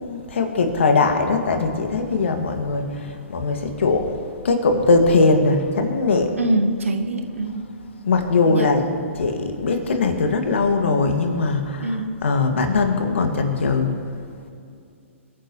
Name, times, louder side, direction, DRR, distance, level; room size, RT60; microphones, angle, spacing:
voice 1, 0.0-6.3 8.0-8.8 9.1-13.9, left 3 dB, 60° left, 5 dB, 2.1 m, -20 dB
voice 2, 6.4-7.6 8.4-8.7 11.8-12.1, right 1 dB, 75° right, 5 dB, 1.6 m, -23 dB
28.5 x 9.6 x 3.2 m, 2.4 s
figure-of-eight pair, 120°, 7 cm